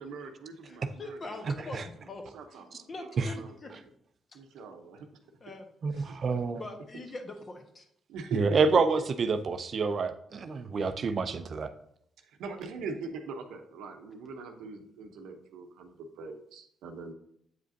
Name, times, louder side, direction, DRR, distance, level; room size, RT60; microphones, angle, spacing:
voice 1, 0.0-1.8 2.3-3.8 4.3-5.1 6.0-6.4 8.1-8.6 12.2-17.1, right 4 dB, 85° right, 5 dB, 0.8 m, -42 dB
voice 2, 0.7-2.2 2.5-3.7 4.3-4.4 5.4-5.7 5.9-6.2 6.5-7.9, left 2 dB, 40° left, 5 dB, 1.1 m, -43 dB
voice 3, 5.8-6.6 8.3-11.7, right 4 dB, 50° right, 10 dB, 0.5 m, -27 dB
8.0 x 5.0 x 2.7 m, 0.71 s
cardioid pair, 90°, 0 cm